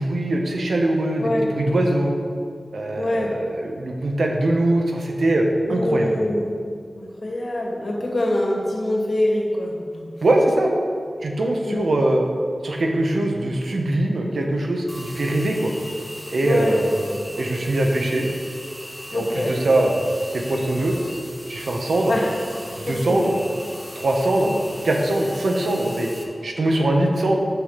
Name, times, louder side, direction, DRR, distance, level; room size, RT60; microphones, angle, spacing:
voice 1, 0.0-2.1 2.7-6.1 10.2-10.7 11.2-12.2 12.6-15.7 16.3-17.0 17.4-18.3 19.1-19.9 20.3-20.9 21.5-22.1 22.8-23.3 23.9-24.5 24.8-26.1 26.4-27.4, right 1 dB, 85° right, 1 dB, 1.4 m, -22 dB
voice 2, 1.2-1.5 3.0-3.3 5.7-6.5 7.0-10.0 11.6-11.9 16.4-16.8 17.1-17.2 19.1-19.6 22.1-22.3 22.7-23.3 24.4-24.8, left 1 dB, 55° left, -2 dB, 2.5 m, -25 dB
sound 1, 14.9-26.2, equal, 5° right, 1.5 m, -39 dB
9.6 x 7.1 x 5.9 m, 2.3 s
wide cardioid pair, 85°, 0 cm